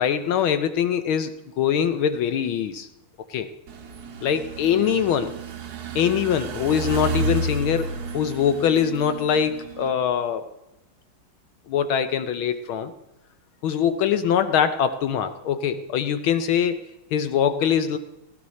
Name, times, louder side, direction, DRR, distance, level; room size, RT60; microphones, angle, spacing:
voice 1, 0.0-2.9 3.3-3.5 4.2-5.3 5.9-10.4 11.7-12.9 13.6-16.8 17.1-18.0, left 8 dB, 75° left, 10 dB, 1.5 m, -23 dB
sound 1, 3.7-9.9, right 3 dB, 50° right, 1.4 m, -31 dB
18.5 x 15.5 x 4.1 m, 0.93 s
omnidirectional pair, 2.4 m